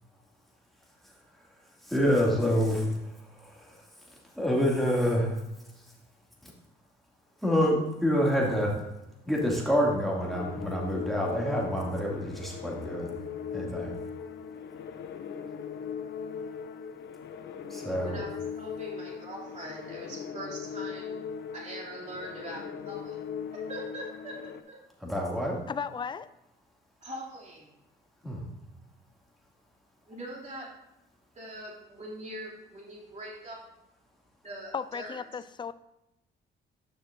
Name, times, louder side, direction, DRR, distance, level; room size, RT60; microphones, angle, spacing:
voice 1, 1.9-3.0 3.4-3.8 4.4-5.4 7.4-8.7 9.3-13.1 13.5-13.9 17.7-18.2 25.0-25.6 28.2-28.4, equal, ahead, -3 dB, 2.4 m, -27 dB
sound 1, 10.2-24.6, left 7 dB, 65° left, 0.6 m, -39 dB
voice 2, 18.0-21.2 21.5-24.8 27.0-27.7 30.1-30.8 31.3-33.6 34.4-35.2, right 1 dB, 35° right, -4 dB, 2.8 m, -42 dB
voice 3, 25.7-26.3 34.7-35.7, left 6 dB, 25° left, 14 dB, 0.4 m, -35 dB
10.0 x 6.3 x 2.6 m, 0.90 s
cardioid pair, 90°, 20 cm